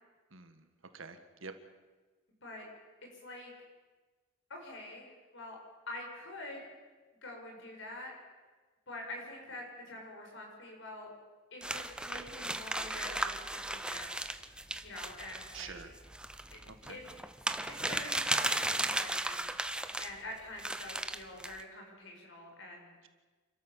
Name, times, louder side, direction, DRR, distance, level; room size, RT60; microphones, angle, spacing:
voice 1, 0.3-0.7 0.9-1.5 15.5-15.9 16.7-17.0, right 5 dB, 65° right, 9 dB, 1.6 m, -47 dB
voice 2, 4.5-5.6 5.9-6.6 7.2-8.1 8.9-11.1 11.5-14.2 14.8-15.8 16.5-16.6 16.9-17.0 17.7-19.5 20.0-22.9, left 1 dB, 60° left, 1 dB, 6.3 m, -46 dB
sound 1, 11.6-20.1 20.6-21.6, right 1 dB, 5° right, 0.7 m, -36 dB
29.0 x 13.0 x 7.3 m, 1.3 s
head